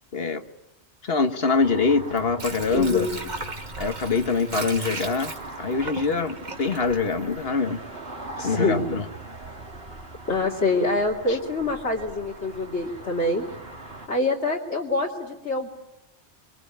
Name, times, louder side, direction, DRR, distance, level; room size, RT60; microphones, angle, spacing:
voice 1, 1.0-3.1 3.8-5.3 5.6-7.8 8.4-9.0 11.3-11.4, left 4 dB, 60° left, 8 dB, 1.8 m, -24 dB
sound 1, 1.6-14.1, right 2 dB, 60° right, 3.0 m, -41 dB
Water / Sink (filling or washing), 2.0-7.9 8.2-8.3, right 3 dB, 40° right, 1.9 m, -36 dB
voice 2, 2.7-3.2 8.4-8.9 10.3-13.4 14.1-15.7, left 2 dB, 75° left, -4 dB, 3.2 m, -25 dB
26.0 x 25.5 x 8.8 m, 0.87 s
omnidirectional pair, 1.2 m